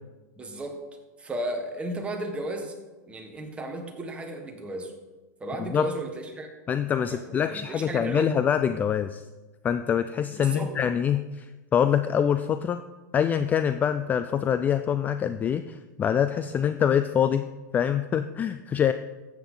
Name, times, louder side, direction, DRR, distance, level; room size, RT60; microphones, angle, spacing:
voice 1, 0.4-0.8 1.2-2.8 3.1-4.9 5.4-6.5 7.1-8.3 10.3-10.8, right 1 dB, 10° right, 3 dB, 1.6 m, -34 dB
voice 2, 6.7-9.2 9.6-12.8 13.1-17.4 17.7-18.9, left 8 dB, 20° left, 11 dB, 0.3 m, -25 dB
13.5 x 8.3 x 3.9 m, 1.2 s
supercardioid pair, 140°, 10 cm